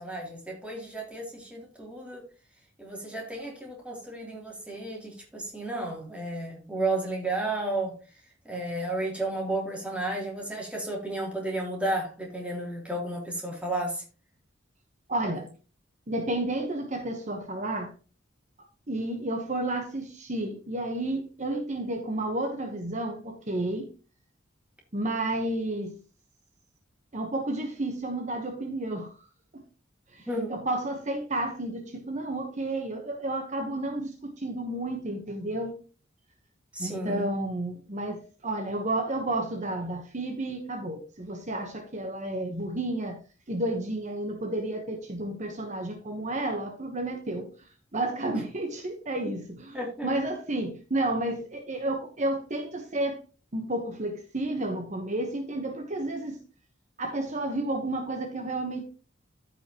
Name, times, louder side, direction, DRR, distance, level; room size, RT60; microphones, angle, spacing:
voice 1, 0.0-2.2 2.8-8.0 8.4-14.0 30.3-30.5 36.7-37.3 48.3-48.4 49.7-50.1, right 2 dB, 5° right, 3.1 m, -32 dB
voice 2, 15.1-15.5 16.1-17.9 18.9-23.9 24.9-26.0 27.1-29.3 29.5-29.6 30.1-35.7 36.8-43.2 43.5-53.2 53.5-56.4 57.0-58.8, right 1 dB, 40° right, 1.2 m, -31 dB
14.5 x 5.6 x 3.0 m
head